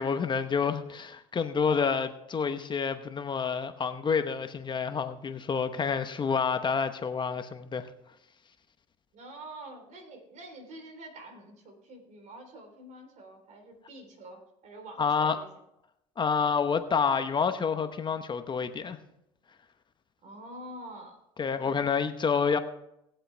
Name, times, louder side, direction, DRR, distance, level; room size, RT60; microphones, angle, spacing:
voice 1, 0.0-7.9 15.0-15.4 16.2-19.0 21.4-22.6, left 6 dB, 30° left, 1.0 m, -28 dB
voice 2, 9.1-15.5 20.2-21.2 21.6-21.9, right 1 dB, 55° right, 3.8 m, -47 dB
20.0 x 7.7 x 3.4 m
supercardioid pair, 85°, 15 cm